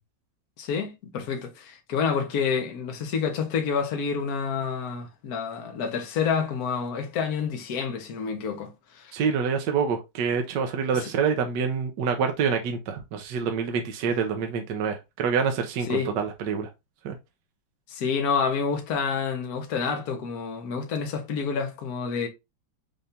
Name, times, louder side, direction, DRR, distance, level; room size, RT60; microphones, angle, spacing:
voice 1, 0.6-9.1 11.0-11.1 15.9-16.1 17.9-22.3, left 6 dB, 55° left, 1.4 m, -28 dB
voice 2, 9.1-16.7 17.0-17.2, right 6 dB, 70° right, 1.4 m, -26 dB
5.7 x 2.6 x 3.3 m
omnidirectional pair, 2.1 m